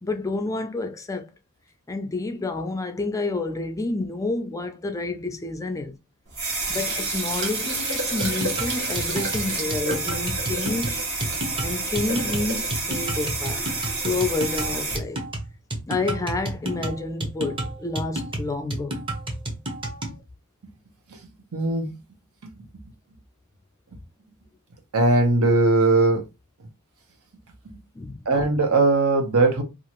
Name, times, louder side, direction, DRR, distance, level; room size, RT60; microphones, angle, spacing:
voice 1, 0.0-1.3 1.9-5.9 6.4-11.0 11.6-13.6 14.0-15.2 15.9-19.0 27.9-28.2, left 3 dB, 15° left, 0.3 m, -29 dB
sound 1, 6.3-15.0, right 2 dB, 55° right, 1.3 m, -28 dB
sound 2, 8.2-20.2, right 1 dB, 25° right, 0.7 m, -31 dB
voice 2, 21.5-21.9 22.4-22.5 24.9-26.2 27.6-27.8 28.3-29.6, right 3 dB, 75° right, 0.9 m, -19 dB
2.7 x 2.4 x 2.9 m
head